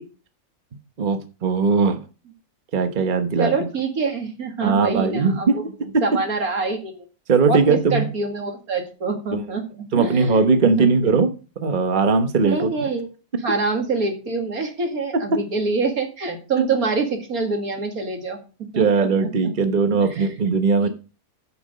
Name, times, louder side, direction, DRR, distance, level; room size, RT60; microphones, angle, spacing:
voice 1, 1.0-2.0 2.7-3.5 4.6-5.6 7.3-8.1 9.3-9.4 9.9-11.3 11.6-12.7 15.3-15.4 18.8-20.9, right 4 dB, 35° right, 8 dB, 1.1 m, -19 dB
voice 2, 3.4-5.7 6.0-7.0 7.5-10.9 12.4-13.1 13.4-18.4 18.7-18.9 19.2-19.5 20.0-20.3 20.8-20.9, right 4 dB, 80° right, 4 dB, 2.7 m, -25 dB
10.5 x 6.1 x 6.6 m, 0.34 s
omnidirectional pair, 1.5 m